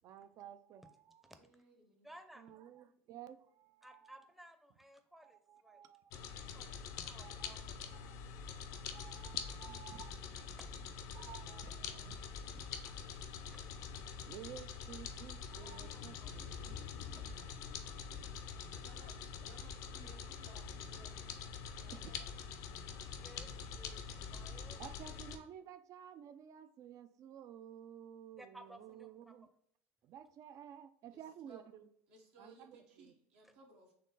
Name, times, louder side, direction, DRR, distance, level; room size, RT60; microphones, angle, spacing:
voice 1, 0.0-1.3 2.4-4.2 5.2-6.3 7.2-7.6 7.9-8.2 8.9-10.2 11.1-12.2 12.5-13.0 14.2-16.8 17.3-17.4 18.1-18.2 21.9-22.1 24.7-29.5 30.0-31.9 32.4-33.1, right 9 dB, 50° right, 0.4 m, -53 dB
voice 2, 1.4-2.1 2.9-3.0 18.8-21.2 21.8-22.2 31.1-31.7 32.1-33.9, right 2 dB, 75° right, 1.3 m, -61 dB
voice 3, 2.0-2.4 3.8-5.8 6.5-7.9 10.5-10.7 11.1-11.2 13.5-13.6 15.6-15.7 16.2-16.3 17.1-17.4 18.7-18.9 23.2-24.8 28.4-29.1 33.4-33.5, right 1 dB, 5° right, 0.6 m, -58 dB
sound 1, 6.1-25.4, left 6 dB, 60° left, 0.5 m, -45 dB
4.3 x 3.1 x 3.8 m
hypercardioid pair, 75°, 7 cm